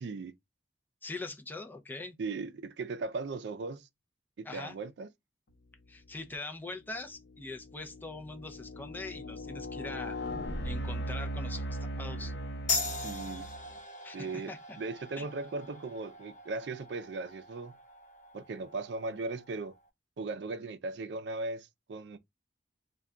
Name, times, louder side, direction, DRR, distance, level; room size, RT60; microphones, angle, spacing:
voice 1, 0.0-0.3 2.2-3.9 4.4-5.1 13.0-13.5 14.1-17.7 18.3-19.7 20.2-22.2, right 3 dB, 70° right, 0.4 m, -38 dB
voice 2, 1.0-2.1 4.4-4.8 5.9-10.2 10.6-12.3 14.0-14.8 15.2-15.3, left 2 dB, 10° left, 0.4 m, -42 dB
sound 1, 6.0-6.3 6.9-13.8, equal, 75° left, 0.7 m, -39 dB
sound 2, 12.7-19.8, left 4 dB, 45° left, 0.8 m, -40 dB
2.2 x 2.2 x 3.6 m
head